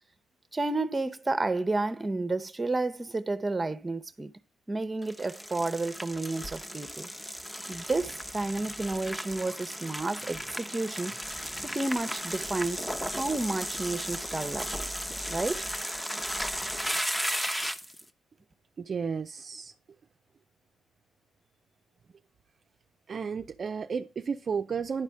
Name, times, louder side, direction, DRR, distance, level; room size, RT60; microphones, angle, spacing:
voice 1, 0.5-4.3 4.7-7.1 7.7-11.1 11.6-12.9 13.2-14.7 15.3-15.7, right 2 dB, 20° right, 0.8 m, -31 dB
sound 1, 5.0-18.0, equal, 5° left, 0.8 m, -35 dB
voice 2, 18.8-19.7 23.1-25.0, right 6 dB, 45° right, 0.4 m, -33 dB
11.0 x 4.1 x 4.8 m
cardioid pair, 90°, 0 cm